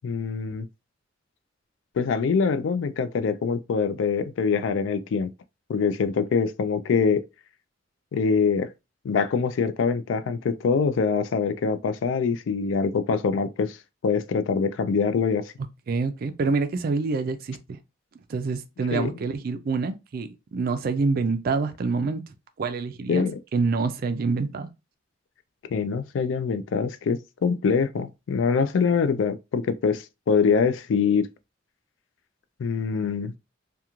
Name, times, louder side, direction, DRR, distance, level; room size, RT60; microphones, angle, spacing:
voice 1, 0.0-0.7 2.0-5.3 5.7-7.2 8.1-8.7 9.0-13.8 14.0-15.5 18.9-19.1 23.1-23.4 25.7-31.3 32.6-33.3, left 5 dB, 75° left, 0.3 m, -24 dB
voice 2, 15.9-17.8 18.3-22.2 22.6-23.3 23.5-24.7, right 4 dB, 50° right, 0.4 m, -26 dB
2.4 x 2.2 x 2.9 m
head